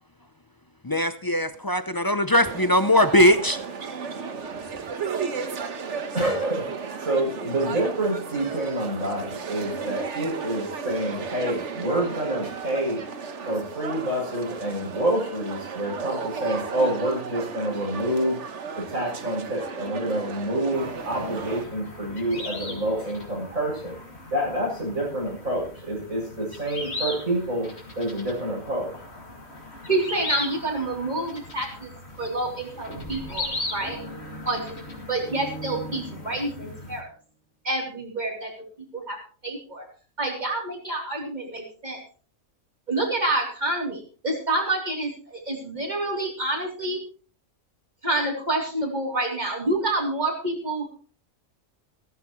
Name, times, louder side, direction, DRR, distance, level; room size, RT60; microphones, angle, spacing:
voice 1, 0.8-3.6, left 1 dB, 30° left, 11 dB, 0.4 m, -20 dB
sound 1, 2.4-21.6, right 5 dB, 60° right, 1.5 m, -34 dB
voice 2, 6.1-6.7 7.0-13.0 13.5-18.4 18.8-24.0 24.3-27.7 28.0-28.9, right 1 dB, 80° right, -2 dB, 8.0 m, -27 dB
sound 2, 20.7-37.0, left 2 dB, 50° left, 2.9 m, -38 dB
voice 3, 29.9-31.9 32.2-34.0 34.5-34.8 35.1-37.1 37.6-38.5 38.9-39.2 39.4-39.9 40.2-42.0 42.9-47.0 48.0-50.9, right 2 dB, 35° right, 1 dB, 3.6 m, -28 dB
sound 3, 32.6-36.8, right 1 dB, 75° left, 4.5 m, -41 dB
15.5 x 14.0 x 3.2 m, 0.39 s
omnidirectional pair, 1.4 m